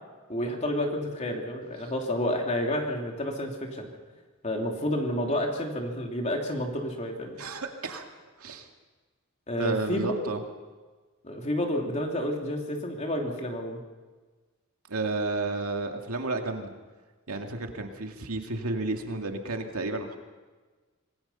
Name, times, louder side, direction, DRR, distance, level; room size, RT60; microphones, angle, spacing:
voice 1, 0.3-3.9 4.4-7.4 9.5-10.2 11.2-13.8, left 1 dB, 30° left, 1 dB, 3.1 m, -30 dB
voice 2, 7.4-8.1 8.4-8.7 9.6-10.4 14.9-16.7 17.3-20.2, right 2 dB, 80° right, 4 dB, 2.2 m, -32 dB
26.5 x 19.0 x 5.7 m, 1.3 s
head